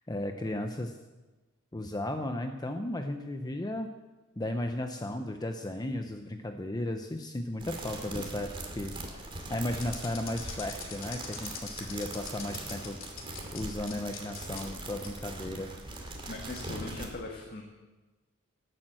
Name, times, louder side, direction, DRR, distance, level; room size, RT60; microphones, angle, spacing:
voice 1, 0.1-0.9 1.7-3.9 4.4-8.5 8.8-13.0 13.5-15.7, left 1 dB, 20° left, 5 dB, 0.8 m, -35 dB
sound 1, 7.6-17.1, right 2 dB, 25° right, 2.5 m, -41 dB
sound 2, 9.8-13.6 13.9-14.6 15.0-15.1 15.8-16.0, left 8 dB, 75° left, 2.9 m, -42 dB
voice 2, 16.3-17.6, left 2 dB, 50° left, 0 dB, 1.8 m, -40 dB
18.0 x 8.9 x 7.6 m, 1.2 s
head